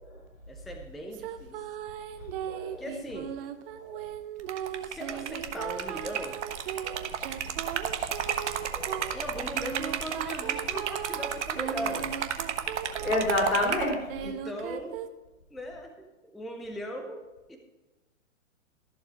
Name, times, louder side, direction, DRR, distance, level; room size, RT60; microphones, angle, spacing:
voice 1, 0.5-1.6 2.8-3.4 4.8-6.4 9.1-12.2 14.2-15.0 15.5-17.6, equal, ahead, 4 dB, 0.4 m, -39 dB
sound 1, 1.1-13.6 14.1-15.1, right 9 dB, 45° right, 1.0 m, -38 dB
voice 2, 2.5-2.8 3.9-4.0 6.8-7.0 8.7-9.2 12.8-14.0, left 2 dB, 90° left, 0 dB, 3.0 m, -29 dB
Liquid, 4.4-13.9, right 8 dB, 60° right, 1.3 m, -33 dB
14.0 x 7.1 x 4.9 m, 1.1 s
hypercardioid pair, 115°, 40 cm